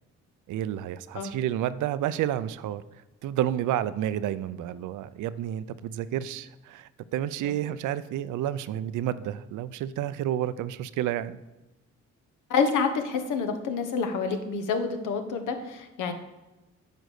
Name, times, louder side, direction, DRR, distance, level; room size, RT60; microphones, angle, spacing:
voice 1, 0.5-2.8 3.2-11.4, right 11 dB, 80° right, 15 dB, 0.5 m, -30 dB
voice 2, 12.5-16.1, left 5 dB, 85° left, 7 dB, 1.2 m, -28 dB
9.3 x 5.2 x 6.5 m, 1.1 s
cardioid pair, 90°, 30 cm